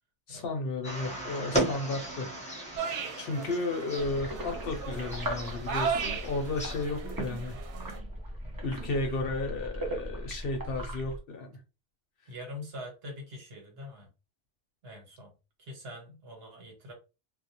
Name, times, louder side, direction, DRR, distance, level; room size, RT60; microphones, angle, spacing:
voice 1, 0.3-2.3 3.2-7.6 8.6-11.6, left 2 dB, 65° left, 4 dB, 0.7 m, -33 dB
sound 1, 0.8-6.8, right 1 dB, 5° left, 0.7 m, -36 dB
sound 2, 2.8-8.0, right 6 dB, 90° right, 0.9 m, -37 dB
sound 3, 4.0-11.2, right 1 dB, 25° right, 0.5 m, -38 dB
voice 2, 12.3-14.1 14.8-15.3 15.6-16.9, left 1 dB, 65° right, 1 dB, 1.2 m, -44 dB
2.4 x 2.0 x 2.7 m, 0.29 s
omnidirectional pair, 1.2 m